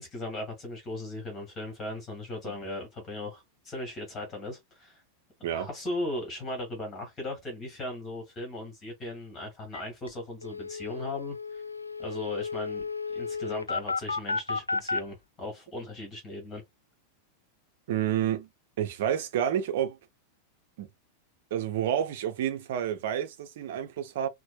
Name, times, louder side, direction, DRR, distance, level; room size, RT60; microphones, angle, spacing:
voice 1, 0.0-5.0 5.5-11.6 12.0-12.9 13.2-16.6, left 1 dB, 20° left, 1.7 m, -37 dB
sound 1, 9.7-9.8 10.1-10.2 10.4-15.0, left 4 dB, 85° left, 0.3 m, -33 dB
voice 2, 17.9-18.5 18.8-20.0 20.8-20.9 21.5-24.3, right 10 dB, 55° right, 0.7 m, -29 dB
4.3 x 2.2 x 2.2 m
figure-of-eight pair, 90°, 0 cm